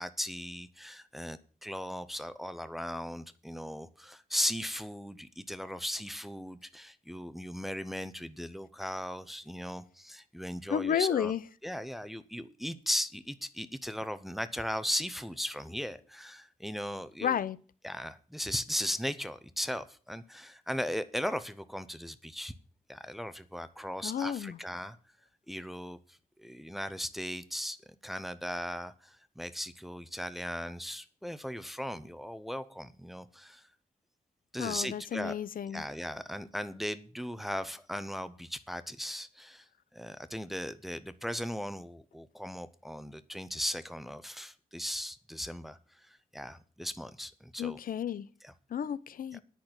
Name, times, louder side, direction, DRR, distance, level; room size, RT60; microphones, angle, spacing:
voice 1, 0.0-11.3 11.6-17.4 17.8-22.5 22.9-25.0 25.5-27.8 28.0-33.7 34.5-35.3 35.7-39.7 39.9-45.8 46.1-47.8 48.4-48.5 49.3-49.4, equal, ahead, 0.6 m, -37 dB
voice 2, 10.7-11.4 17.2-17.6 24.0-24.6 34.6-35.8 47.6-48.3 48.7-49.4, left 8 dB, 80° left, 0.6 m, -32 dB
10.5 x 6.0 x 8.7 m
wide cardioid pair, 170°, 14 cm